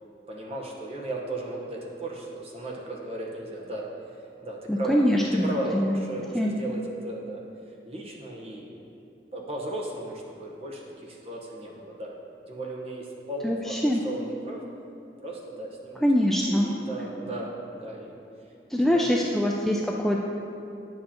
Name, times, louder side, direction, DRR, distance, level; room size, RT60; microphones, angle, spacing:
voice 1, 0.3-3.9 4.4-7.4 7.8-8.8 9.3-12.1 12.5-14.6 15.2-18.1 18.7-19.2, right 1 dB, 35° right, -2 dB, 1.0 m, -36 dB
voice 2, 4.7-5.4 5.7-6.0 6.3-6.5 13.4-14.0 16.0-16.7 18.7-20.2, equal, ahead, -2 dB, 0.3 m, -23 dB
9.8 x 7.5 x 2.9 m, 2.6 s
head